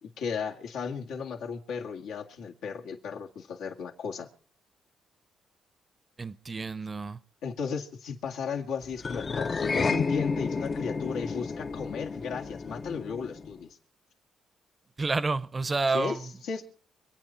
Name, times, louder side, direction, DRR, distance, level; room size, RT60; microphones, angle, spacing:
voice 1, 0.0-4.3 7.4-13.8 15.9-16.2 16.4-16.7, left 6 dB, 85° left, 2.0 m, -35 dB
voice 2, 6.2-7.2 15.0-16.3, right 3 dB, 30° right, 0.8 m, -29 dB
sound 1, 9.0-13.6, left 4 dB, 35° left, 0.7 m, -31 dB
26.5 x 8.8 x 4.5 m
cardioid pair, 90°, 0 cm